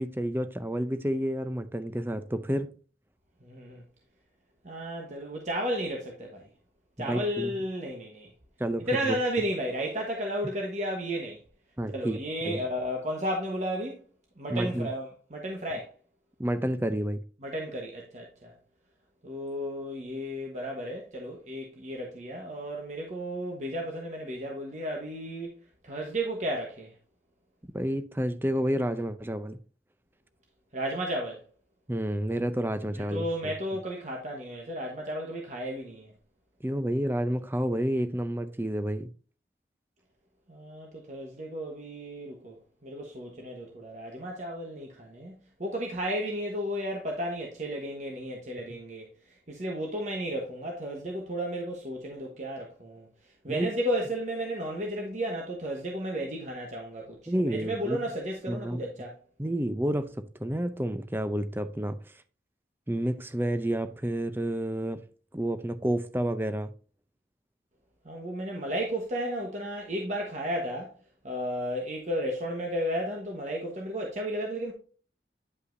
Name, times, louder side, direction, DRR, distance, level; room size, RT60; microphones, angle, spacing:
voice 1, 0.0-2.7 7.0-7.5 8.6-9.2 11.8-12.2 12.4-12.6 14.5-14.9 16.4-17.2 27.7-29.6 31.9-33.2 36.6-39.1 53.5-53.7 57.3-58.0 58.5-58.9 59.4-62.0 62.9-65.0 65.3-66.7, right 1 dB, 10° right, 0.5 m, -30 dB
voice 2, 3.4-3.8 4.6-6.5 7.0-8.3 8.9-11.4 11.9-14.0 14.4-15.9 17.4-18.5 19.2-25.5 25.8-26.9 30.7-31.4 32.9-36.1 40.5-42.6 42.8-45.3 45.6-53.1 53.4-59.2 68.0-70.9 71.2-74.7, equal, 40° right, 1.2 m, -33 dB
9.6 x 5.5 x 2.6 m
head